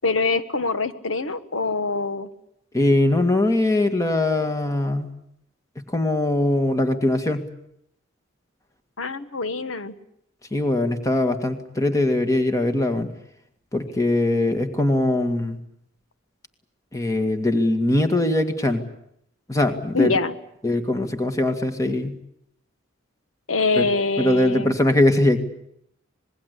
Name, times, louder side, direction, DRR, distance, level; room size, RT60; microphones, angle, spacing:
voice 1, 0.0-2.3 9.0-9.9 19.9-20.3 23.5-24.8, left 3 dB, 90° left, 11 dB, 1.4 m, -24 dB
voice 2, 2.7-5.1 5.9-7.5 10.5-13.1 13.7-15.6 16.9-18.8 19.5-20.1 20.6-22.1 23.8-23.9 24.2-25.4, left 1 dB, 15° left, 8 dB, 2.0 m, -21 dB
26.5 x 21.0 x 8.3 m, 0.72 s
head